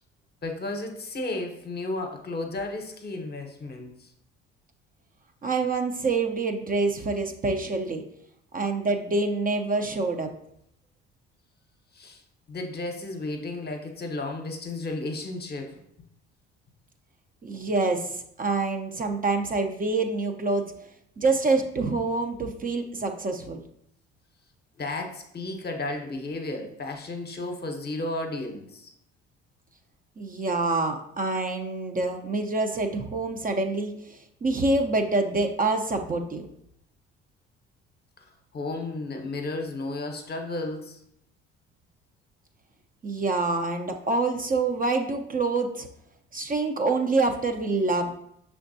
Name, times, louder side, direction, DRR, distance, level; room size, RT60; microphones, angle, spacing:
voice 1, 0.4-4.1 11.9-12.2 12.5-15.8 24.8-28.9 38.2-38.3 38.5-41.0, left 2 dB, 30° left, 5 dB, 0.9 m, -33 dB
voice 2, 5.4-8.0 8.5-10.3 17.4-20.8 21.2-23.6 30.2-36.5 43.0-45.9 46.3-48.1, right 3 dB, 30° right, 4 dB, 0.6 m, -26 dB
5.8 x 3.4 x 2.7 m, 0.74 s
hypercardioid pair, 55°, 31 cm